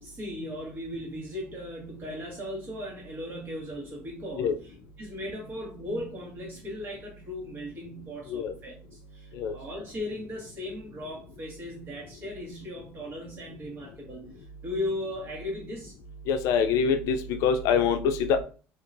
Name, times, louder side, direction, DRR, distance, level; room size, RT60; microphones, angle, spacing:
voice 1, 0.0-4.5 5.0-15.9, left 1 dB, 40° right, -1 dB, 1.6 m, -37 dB
voice 2, 16.3-18.4, left 6 dB, 75° left, 7 dB, 0.4 m, -25 dB
2.9 x 2.8 x 2.6 m, 0.37 s
cardioid pair, 120°, 6 cm